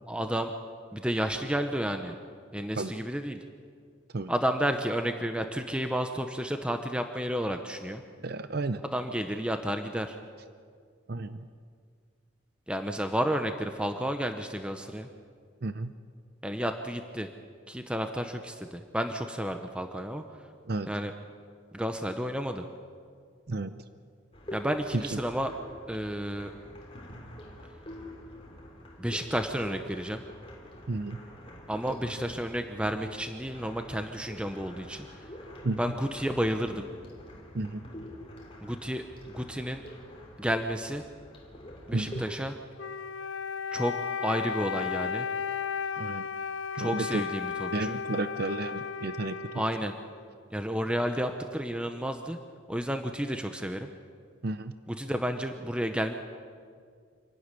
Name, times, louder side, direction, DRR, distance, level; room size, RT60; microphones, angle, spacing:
voice 1, 0.1-0.5 0.9-2.2 2.5-3.4 4.3-8.0 8.8-10.2 12.7-15.1 16.4-17.3 17.7-20.4 20.9-21.1 21.7-22.6 24.5-25.5 25.9-26.5 29.0-30.2 31.7-35.1 35.8-36.9 38.6-39.8 40.4-41.1 41.9-42.6 43.7-44.0 44.2-45.3 46.7-48.0 49.5-50.0 50.5-52.4 52.7-53.9 54.9-56.1, equal, 5° right, 6 dB, 0.8 m, -31 dB
voice 2, 8.2-8.8 11.1-11.5 15.6-15.9 20.7-20.9 23.5-23.7 24.9-25.2 30.9-31.2 35.6-35.8 37.5-37.8 41.9-42.1 46.0-46.2 46.8-47.2 47.7-49.6 54.4-54.7, right 2 dB, 50° right, 11 dB, 0.6 m, -32 dB
sound 1, 24.3-42.3, equal, 30° left, 3.1 m, -46 dB
Wind instrument woodwind instrument, 42.8-50.3, left 6 dB, 70° left, 0.6 m, -34 dB
26.5 x 12.0 x 9.8 m, 2.1 s
head